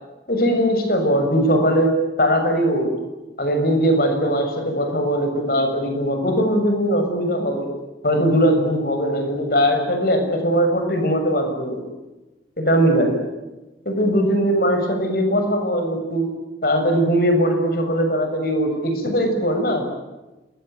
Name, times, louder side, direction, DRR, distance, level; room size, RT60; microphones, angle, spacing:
voice 1, 0.3-1.9 2.2-2.9 3.4-7.7 8.0-11.9 12.6-13.2 13.9-16.3 16.6-19.8, equal, 55° left, 5 dB, 6.9 m, -20 dB
27.5 x 22.0 x 9.4 m, 1.1 s
head